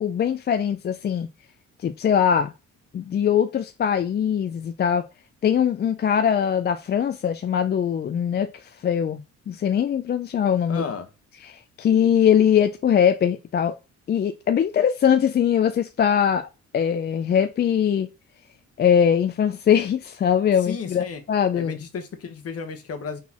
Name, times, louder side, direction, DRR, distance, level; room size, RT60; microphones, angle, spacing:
voice 1, 0.0-1.3 1.8-2.5 2.9-5.0 5.4-9.2 9.5-10.8 11.5-13.8 14.1-18.1 18.8-21.8, left 8 dB, 35° left, 0.4 m, -21 dB
voice 2, 10.7-11.1 20.6-21.2 21.5-23.2, left 5 dB, 50° left, 1.0 m, -33 dB
4.1 x 4.0 x 2.8 m
cardioid pair, 90°, 30 cm